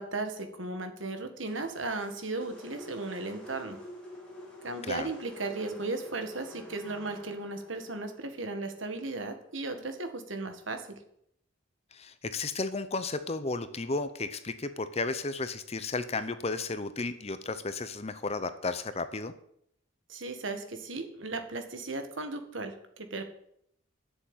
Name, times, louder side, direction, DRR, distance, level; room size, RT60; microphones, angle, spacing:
voice 1, 0.0-3.8 4.6-10.8 20.1-23.2, right 3 dB, 75° right, 7 dB, 1.9 m, -36 dB
sound 1, 1.5-9.7, left 1 dB, 5° left, 3.7 m, -49 dB
voice 2, 11.9-19.3, left 3 dB, 30° left, 11 dB, 0.8 m, -33 dB
11.5 x 7.1 x 9.1 m, 0.71 s
head